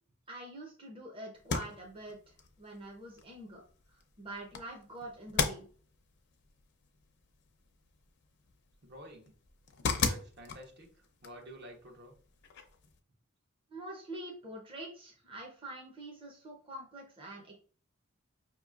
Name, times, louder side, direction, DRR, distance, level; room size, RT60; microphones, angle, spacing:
voice 1, 0.3-3.6 3.9-5.7 13.7-17.5, right 1 dB, 25° right, -1 dB, 0.7 m, -46 dB
sound 1, 1.3-13.0, left 5 dB, 55° left, 0.6 m, -39 dB
voice 2, 8.8-9.3 10.0-12.1, right 1 dB, 55° right, 1 dB, 1.0 m, -50 dB
5.1 x 2.9 x 2.4 m, 0.43 s
head